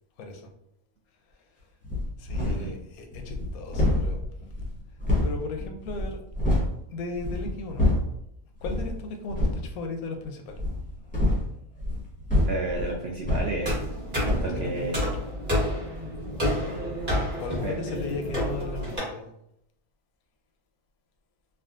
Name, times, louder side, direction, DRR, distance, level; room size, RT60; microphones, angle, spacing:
voice 1, 0.2-0.5 2.2-4.2 5.2-6.2 6.9-7.9 8.6-10.6 14.5-15.3 17.4-19.3, left 3 dB, 90° left, 4 dB, 1.1 m, -36 dB
sound 1, 1.8-2.8 3.1-6.7 7.1-8.2 8.6-8.9 9.3-9.7 10.5-14.0 14.2-14.6, left 1 dB, 10° left, 0.7 m, -27 dB
voice 2, 2.4-2.7 12.5-13.7 14.3-15.0 17.6-18.1, right 2 dB, 65° right, -2 dB, 0.6 m, -32 dB
sound 2, 13.6-19.0, equal, 40° right, 1.3 m, -29 dB
3.6 x 2.2 x 2.4 m, 0.77 s
omnidirectional pair, 1.5 m